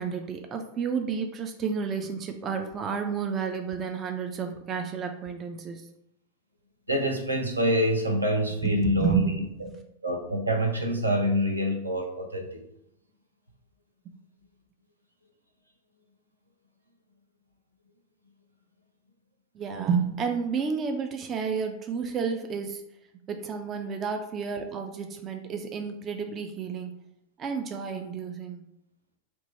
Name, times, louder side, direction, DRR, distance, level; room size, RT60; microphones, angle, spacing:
voice 1, 0.0-5.9 8.6-9.8 19.6-22.8 23.3-26.9 27.4-28.6, right 6 dB, 25° right, 5 dB, 0.3 m, -31 dB
voice 2, 6.9-9.2 10.0-12.6, equal, 80° right, 1 dB, 0.5 m, -26 dB
2.9 x 2.2 x 4.2 m, 0.78 s
figure-of-eight pair, 90°, 0 cm